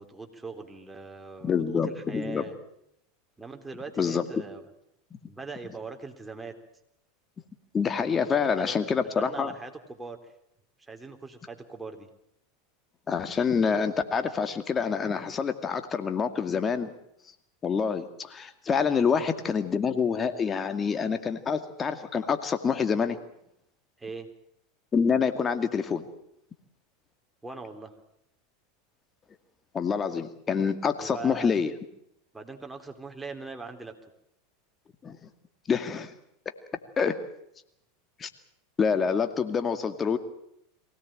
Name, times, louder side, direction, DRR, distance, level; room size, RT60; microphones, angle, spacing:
voice 1, 0.0-2.6 3.4-4.6 5.3-6.5 8.4-8.9 9.2-10.3 10.8-12.1 19.1-19.3 24.0-24.3 27.4-27.9 31.0-31.5 32.3-33.9, right 4 dB, 10° right, 4 dB, 3.6 m, -41 dB
voice 2, 1.4-2.4 4.0-4.4 7.7-9.5 13.1-16.9 17.6-23.2 24.9-26.0 29.7-31.7 35.0-35.2 35.7-36.1 37.0-37.2 38.2-38.3 38.8-40.2, left 6 dB, 25° left, 9 dB, 2.3 m, -26 dB
23.0 x 17.5 x 8.9 m, 0.77 s
hypercardioid pair, 90°, 0 cm